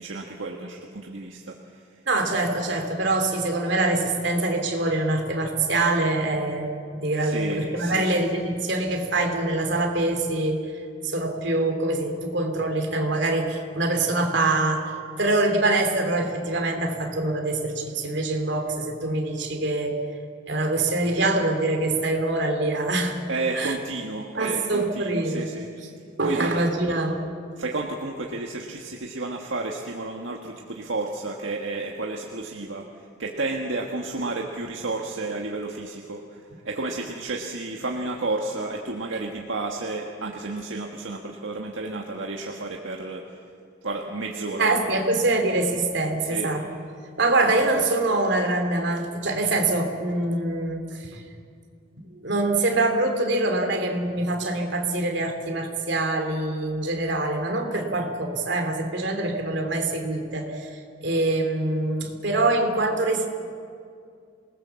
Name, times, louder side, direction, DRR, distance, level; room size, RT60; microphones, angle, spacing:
voice 1, 0.0-1.5 7.2-8.2 23.3-25.7 26.2-26.5 27.6-32.9 33.2-43.3 43.8-45.0 46.3-46.5, right 2 dB, 75° right, 0 dB, 1.7 m, -31 dB
voice 2, 2.1-10.7 11.0-20.0 20.5-23.2 23.5-23.7 24.4-25.5 26.2-27.3 44.6-46.8 47.2-51.2 52.0-63.3, right 2 dB, 60° right, 4 dB, 3.1 m, -24 dB
27.0 x 19.5 x 7.2 m, 2.3 s
head